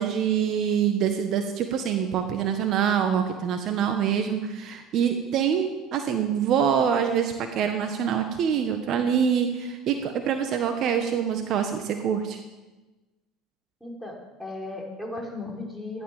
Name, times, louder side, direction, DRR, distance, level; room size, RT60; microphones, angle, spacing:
voice 1, 0.0-12.4, right 8 dB, 55° right, 6 dB, 1.5 m, -25 dB
voice 2, 13.8-16.0, left 2 dB, 5° right, -1 dB, 5.6 m, -36 dB
15.0 x 11.5 x 7.3 m, 1.2 s
hypercardioid pair, 80°, 0 cm